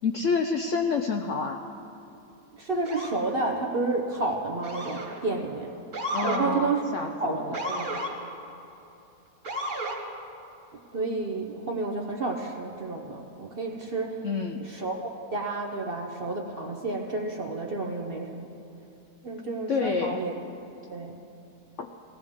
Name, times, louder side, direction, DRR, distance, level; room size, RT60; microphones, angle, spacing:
voice 1, 0.0-1.6 6.1-7.6 14.2-14.6 19.7-20.2 21.8-21.9, left 5 dB, 65° left, 4 dB, 0.7 m, -28 dB
voice 2, 2.5-5.7 6.2-6.8 7.2-7.9 10.9-14.2 14.6-18.4 19.2-20.3 20.9-21.2, right 3 dB, 45° right, 0 dB, 0.9 m, -30 dB
Motor vehicle (road) / Siren, 2.8-3.2 4.6-5.2 5.9-6.4 7.5-8.1 9.4-10.0, right 1 dB, 60° right, 2.2 m, -32 dB
18.0 x 15.5 x 3.6 m, 2.8 s
omnidirectional pair, 1.8 m